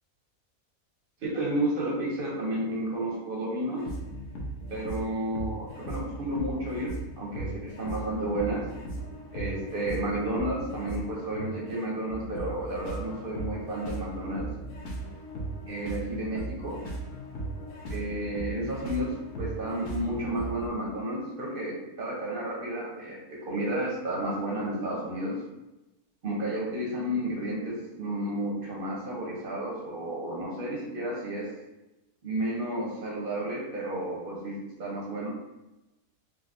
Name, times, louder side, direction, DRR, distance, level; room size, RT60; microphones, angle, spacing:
voice 1, 1.2-3.9 4.7-8.7 9.3-14.5 15.6-16.8 17.9-25.4 26.2-31.5 32.2-35.3, right 1 dB, 55° right, -3 dB, 0.6 m, -32 dB
sound 1, 3.8-20.7, right 2 dB, 60° left, 0.8 m, -38 dB
3.8 x 2.3 x 2.4 m, 0.99 s
omnidirectional pair, 1.6 m